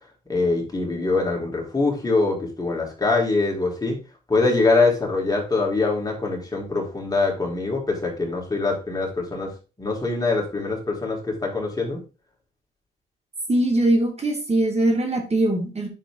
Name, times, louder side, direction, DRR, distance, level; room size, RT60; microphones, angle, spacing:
voice 1, 0.3-4.0 4.3-9.5 9.8-12.0, left 3 dB, 20° left, -1 dB, 3.9 m, -23 dB
voice 2, 13.5-15.9, right 1 dB, 30° right, 2 dB, 2.9 m, -21 dB
9.1 x 7.4 x 3.8 m, 0.31 s
cardioid pair, 90°, 20 cm